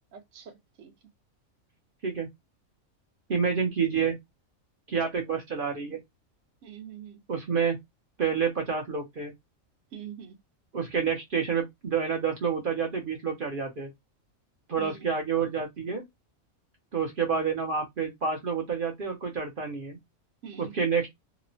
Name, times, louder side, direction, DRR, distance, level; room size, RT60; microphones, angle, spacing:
voice 1, 0.1-0.9 6.6-7.2 9.9-10.4 14.8-15.1 20.4-20.7, right 9 dB, 70° right, 1.0 m, -44 dB
voice 2, 3.3-4.2 4.9-6.0 7.3-7.8 8.2-9.3 10.7-13.9 14.7-16.0 16.9-20.0 20.6-21.1, right 6 dB, 50° right, 0.7 m, -28 dB
2.9 x 2.1 x 2.5 m
omnidirectional pair, 1.4 m